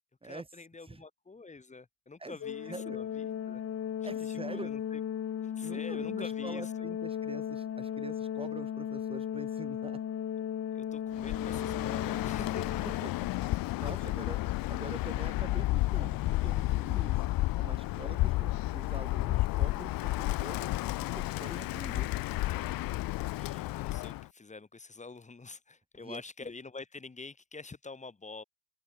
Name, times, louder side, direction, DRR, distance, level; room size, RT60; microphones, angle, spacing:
voice 1, 0.2-3.6 4.1-5.0 5.4-6.9 10.7-13.0 14.0-14.1 22.9-28.4, left 4 dB, 15° left, 7.3 m, -47 dB
Organ, 2.4-13.3, left 9 dB, 35° left, 6.1 m, -36 dB
voice 2, 2.6-3.0 4.0-4.7 5.6-10.0 12.8-13.1 13.4-17.2 17.6-20.7 21.1-22.1 22.5-22.7 26.0-26.2, right 3 dB, 15° right, 6.2 m, -45 dB
Bird, 11.2-24.3, left 18 dB, 55° left, 2.0 m, -32 dB
supercardioid pair, 100°, 41 cm